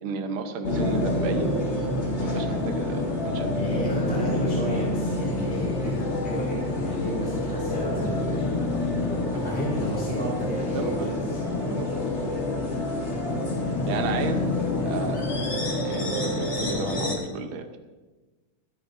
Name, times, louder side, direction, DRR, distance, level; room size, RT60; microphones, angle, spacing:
voice 1, 0.0-1.5 2.2-3.5 9.3-9.6 10.7-11.1 11.7-11.8 13.9-14.4 14.8-15.2 15.8-17.8, right 5 dB, 65° right, 6 dB, 1.4 m, -33 dB
sound 1, 0.6-17.2, left 2 dB, 30° left, 1.3 m, -27 dB
voice 2, 3.6-11.6 12.2-12.7 13.0-13.2, equal, 5° left, -6 dB, 3.0 m, -33 dB
26.0 x 9.7 x 2.7 m, 1.2 s
omnidirectional pair, 3.4 m